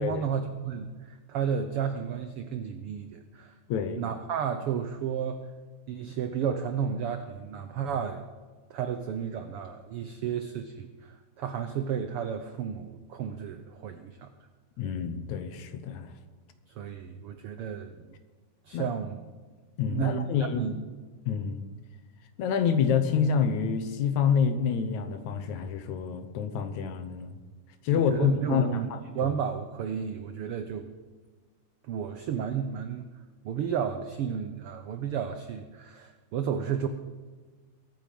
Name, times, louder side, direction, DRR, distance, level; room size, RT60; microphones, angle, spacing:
voice 1, 0.0-3.5 4.0-5.5 5.9-8.2 8.7-14.3 16.7-18.1 18.6-19.2 19.9-20.8 27.9-30.9 31.8-33.1 33.4-36.9, right 7 dB, 85° right, 8 dB, 1.2 m, -32 dB
voice 2, 3.7-4.0 14.8-16.1 18.7-18.9 19.8-20.6 21.3-21.6 22.4-27.3 27.8-29.3, left 7 dB, 70° left, 9 dB, 2.3 m, -27 dB
22.0 x 9.4 x 5.2 m, 1.4 s
omnidirectional pair, 3.6 m